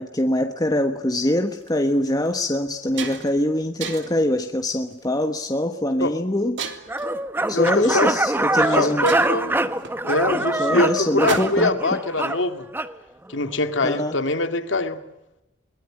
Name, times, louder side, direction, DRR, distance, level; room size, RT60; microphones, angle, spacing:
voice 1, 0.0-6.6 7.5-9.1 10.6-11.7 13.8-14.1, left 1 dB, 20° left, 6 dB, 1.3 m, -23 dB
sound 1, 1.5-1.7 2.3-2.4 2.7-3.4 3.8-4.3 4.9-5.2 6.6-7.1 8.2-8.3 8.7-8.8 9.1-11.8, right 4 dB, 70° right, 3.0 m, -33 dB
sound 2, 6.9-12.9, right 2 dB, 10° right, 1.0 m, -24 dB
voice 2, 7.5-8.1 8.7-9.5 10.0-12.7 13.3-15.0, left 2 dB, 75° left, 8 dB, 2.3 m, -23 dB
23.0 x 20.0 x 9.9 m, 0.92 s
head